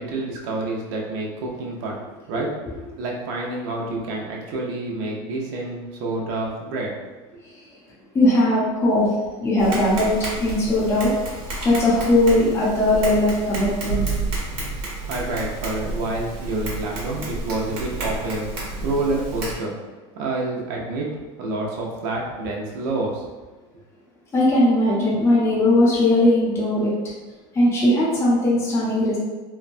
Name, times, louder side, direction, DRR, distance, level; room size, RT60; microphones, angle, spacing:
voice 1, 0.0-2.0 2.3-2.5 3.0-6.9 15.1-19.7 20.2-21.1 21.4-23.2, right 2 dB, 70° right, -2 dB, 0.7 m, -28 dB
voice 2, 8.1-9.1 9.4-11.1 11.6-14.0 24.3-26.9 27.5-29.2, left 1 dB, 15° left, -7 dB, 0.6 m, -19 dB
Tap, 9.6-19.5, right 2 dB, 40° right, 1.3 m, -30 dB
3.1 x 2.1 x 2.5 m, 1.2 s
supercardioid pair, 130°, 15 cm